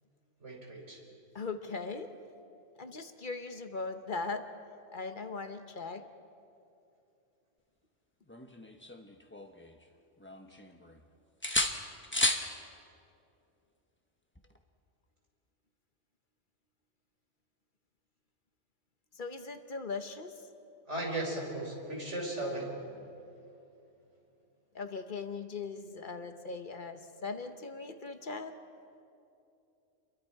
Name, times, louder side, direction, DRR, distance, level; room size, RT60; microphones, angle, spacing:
voice 1, 0.4-1.0 20.9-22.9, right 1 dB, 65° right, 0 dB, 4.3 m, -36 dB
voice 2, 1.3-2.1 2.8-4.5 4.9-6.0 19.1-20.3 24.7-28.5, left 4 dB, 45° left, 8 dB, 1.1 m, -39 dB
sound 1, 8.3-9.8 10.2-11.0 11.4-12.5 14.4-14.6, left 1 dB, 10° left, 0.9 m, -33 dB
29.5 x 23.0 x 4.7 m, 2.7 s
omnidirectional pair, 1.3 m